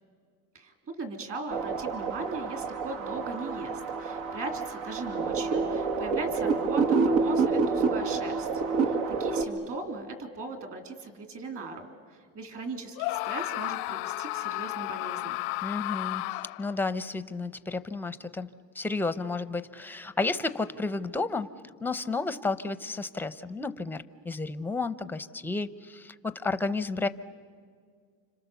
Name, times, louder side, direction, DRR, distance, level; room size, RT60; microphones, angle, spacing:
voice 1, 0.5-8.5 8.8-15.4, right 3 dB, 40° right, 5 dB, 3.3 m, -38 dB
sound 1, 1.5-9.4, right 4 dB, 85° right, 2.3 m, -28 dB
Screaming, 13.0-16.8, left 21 dB, 85° left, 0.6 m, -33 dB
voice 2, 15.6-16.2 16.6-18.5 18.7-21.5 21.8-27.1, left 3 dB, 5° left, 12 dB, 0.6 m, -32 dB
30.0 x 26.5 x 7.0 m, 2.1 s
cardioid pair, 145°, 36 cm